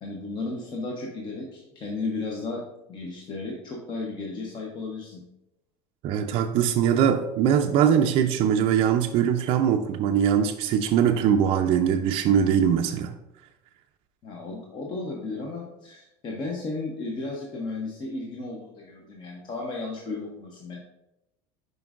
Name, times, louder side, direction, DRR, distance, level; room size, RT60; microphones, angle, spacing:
voice 1, 0.0-2.6 2.9-5.2 14.2-20.8, left 3 dB, 30° left, -1 dB, 0.8 m, -34 dB
voice 2, 6.0-13.1, right 8 dB, 40° right, 4 dB, 0.4 m, -22 dB
7.5 x 5.1 x 2.4 m, 0.91 s
cardioid pair, 150°, 15 cm